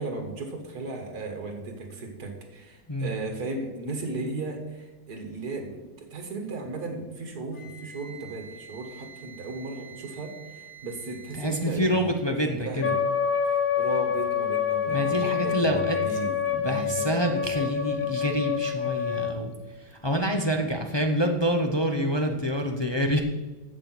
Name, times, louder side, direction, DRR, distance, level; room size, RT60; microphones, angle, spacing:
voice 1, 0.0-12.1 12.4-12.9 13.4-17.3, right 3 dB, 55° right, 3 dB, 2.4 m, -36 dB
Wind instrument woodwind instrument, 7.5-11.7, right 7 dB, 85° left, 2.9 m, -47 dB
voice 2, 11.4-13.0 14.9-16.2 16.5-23.2, equal, 30° left, 3 dB, 0.5 m, -27 dB
Wind instrument woodwind instrument 2, 12.8-19.4, left 8 dB, 50° left, 1.6 m, -27 dB
12.0 x 7.6 x 6.1 m, 1.2 s
omnidirectional pair, 2.0 m